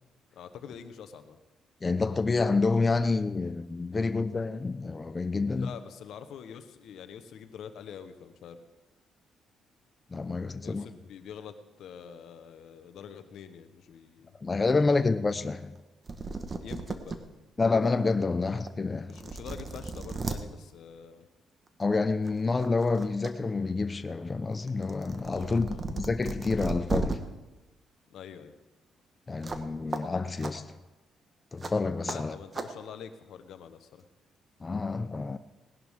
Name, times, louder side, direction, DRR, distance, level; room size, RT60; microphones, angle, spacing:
voice 1, 0.3-1.4 5.5-8.6 10.5-14.4 14.8-15.0 16.6-17.2 19.1-21.3 25.3-25.9 28.1-28.6 32.0-34.1, left 7 dB, 75° left, 1.1 m, -45 dB
voice 2, 1.8-5.7 10.1-10.9 14.4-15.7 17.6-19.1 21.8-27.2 29.3-30.8 31.5-32.3 34.6-35.4, left 3 dB, 30° left, 0.5 m, -28 dB
sound 1, 15.8-17.2 17.7-17.8 18.7-18.8 19.1-20.4 21.7-21.9 22.3-23.3 23.7-27.2 29.4-29.6 29.9-30.0 30.4-30.5 31.6-31.7 32.1-32.2 32.5-32.7, right 4 dB, 35° right, 1.2 m, -35 dB
19.0 x 11.0 x 3.7 m
cardioid pair, 90°, 0 cm